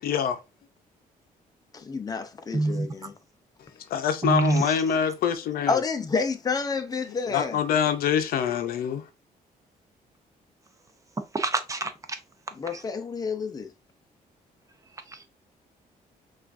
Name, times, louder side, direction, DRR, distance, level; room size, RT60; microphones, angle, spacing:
voice 1, 0.0-0.4 3.9-5.8 7.3-9.0, left 8 dB, 80° left, 0.6 m, -25 dB
voice 2, 1.7-3.1 5.7-7.6 12.5-13.7, left 5 dB, 25° left, 0.6 m, -29 dB
voice 3, 2.5-2.9 4.2-4.6 11.3-11.9, right 2 dB, 20° right, 0.5 m, -24 dB
5.8 x 2.5 x 2.5 m
cardioid pair, 135°, 15 cm